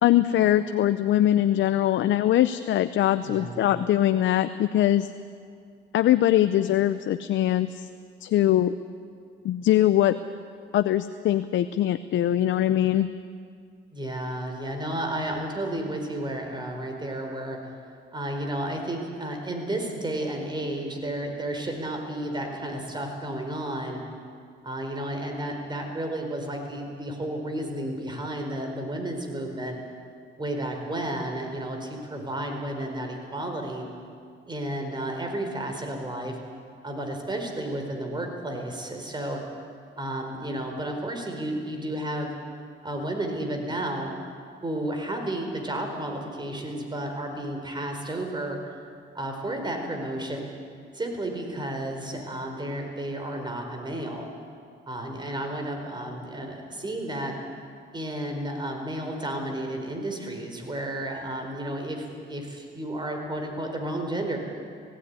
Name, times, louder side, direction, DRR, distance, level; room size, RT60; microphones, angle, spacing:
voice 1, 0.0-5.1 5.9-7.9 8.2-8.7 9.4-10.1 10.7-13.1, left 12 dB, 75° left, 12 dB, 0.6 m, -22 dB
voice 2, 3.2-3.7 13.9-17.6 18.1-24.0 24.6-29.8 30.4-33.9 34.5-36.4 36.8-39.4 40.0-42.4 42.8-44.1 44.6-48.7 49.1-50.5 50.9-54.3 54.9-57.4 57.9-64.4, right 1 dB, 20° right, 3 dB, 4.5 m, -32 dB
18.0 x 16.0 x 9.7 m, 2.2 s
cardioid pair, 90°, 20 cm